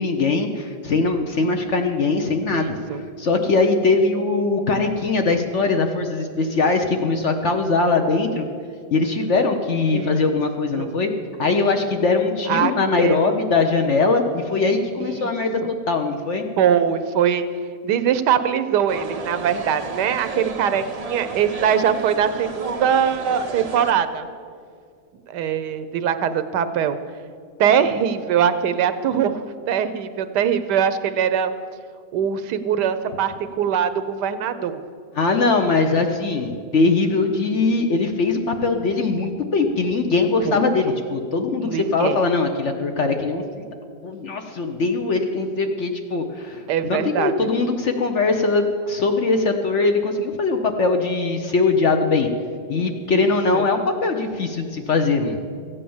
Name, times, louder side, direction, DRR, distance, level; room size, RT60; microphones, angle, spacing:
voice 1, 0.0-8.5 8.9-11.1 11.4-15.6 15.9-16.5 35.1-43.7 44.0-52.3 52.7-55.4, left 3 dB, 55° left, 5 dB, 0.9 m, -21 dB
voice 2, 2.5-3.0 9.9-10.2 10.8-10.9 12.5-12.7 13.0-13.3 15.2-15.3 16.6-17.5 17.8-24.3 25.3-27.0 27.6-31.5 32.1-34.8 40.4-40.7 41.6-42.2 46.7-47.3 53.1-53.3 53.5-53.6, right 8 dB, 75° right, 11 dB, 1.3 m, -22 dB
sound 1, 18.9-23.9, right 3 dB, 45° right, 0.4 m, -32 dB
14.5 x 8.5 x 7.1 m, 2.2 s
omnidirectional pair, 1.8 m